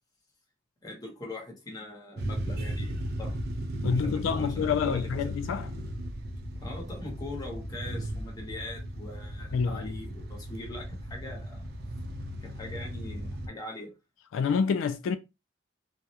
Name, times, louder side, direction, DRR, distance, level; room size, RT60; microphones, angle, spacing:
voice 1, 0.8-3.4 3.9-5.3 6.6-11.7 12.4-13.9, left 2 dB, 20° left, 0.8 m, -42 dB
sound 1, 2.2-13.5, equal, 55° right, 0.4 m, -36 dB
voice 2, 3.8-5.7 9.5-9.8 14.3-15.2, left 6 dB, 85° left, 0.3 m, -27 dB
2.3 x 2.0 x 2.8 m
head